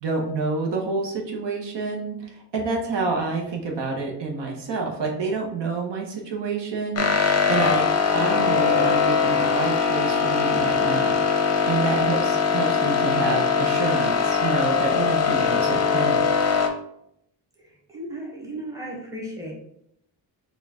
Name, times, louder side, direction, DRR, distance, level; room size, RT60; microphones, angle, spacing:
voice 1, 0.0-7.1 7.5-7.9 8.1-11.1 11.7-16.3, right 4 dB, 70° right, 0 dB, 0.9 m, -28 dB
sound 1, 7.0-16.7, left 6 dB, 35° left, 0.6 m, -21 dB
voice 2, 17.9-19.5, right 1 dB, 5° right, -2 dB, 1.1 m, -35 dB
4.3 x 2.4 x 3.5 m, 0.76 s
cardioid pair, 110°, 44 cm